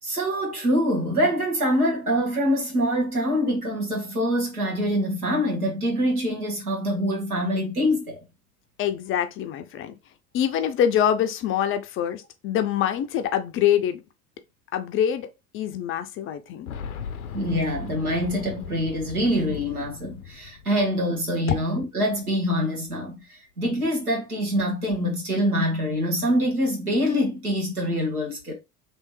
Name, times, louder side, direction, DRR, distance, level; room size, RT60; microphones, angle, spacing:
voice 1, 0.0-8.2 17.3-28.5, equal, 85° right, 1.5 m, -25 dB
voice 2, 8.8-9.9 10.3-14.0 14.7-15.3 15.5-16.7, left 9 dB, 30° left, 0.5 m, -25 dB
Boom, 16.7-21.4 21.7-21.8 22.9-23.0, left 7 dB, 75° left, 0.6 m, -38 dB
3.2 x 3.0 x 3.1 m
figure-of-eight pair, 70°, 44 cm